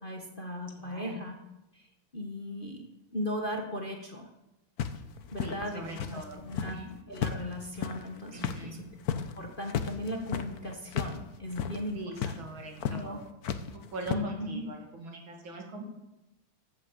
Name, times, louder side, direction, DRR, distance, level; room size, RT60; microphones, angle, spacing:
voice 1, 0.0-1.4 1.7-2.9 3.1-4.3 5.3-6.8 7.1-8.8 9.1-12.4 12.9-13.2 14.1-14.7, left 1 dB, 25° left, 2 dB, 1.4 m, -37 dB
voice 2, 0.8-1.2 5.4-6.9 8.3-8.8 11.9-13.3 13.7-15.9, right 3 dB, 65° right, 2 dB, 3.1 m, -42 dB
sound 1, 4.8-6.8 7.1-11.2 11.5-11.8 12.2-12.4 12.8-13.0 13.4-14.2, left 8 dB, 55° left, 1.2 m, -34 dB
14.5 x 8.5 x 8.1 m, 0.95 s
omnidirectional pair, 2.3 m